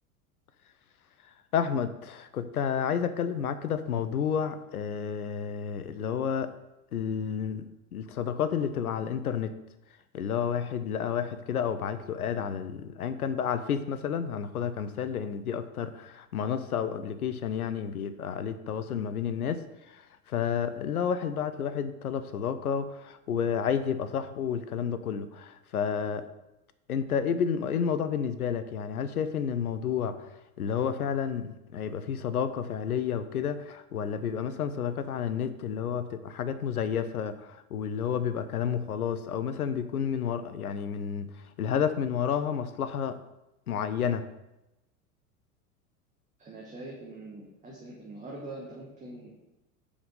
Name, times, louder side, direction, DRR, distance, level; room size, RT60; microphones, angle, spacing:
voice 1, 1.5-6.5 6.9-7.7 7.9-9.5 10.1-26.3 26.9-30.3 30.6-41.3 41.6-43.2 43.7-44.2, left 7 dB, 75° left, 11 dB, 0.6 m, -30 dB
voice 2, 46.4-49.4, right 2 dB, 15° right, -4 dB, 1.3 m, -43 dB
5.1 x 5.1 x 5.3 m, 0.94 s
figure-of-eight pair, 85°, 45 cm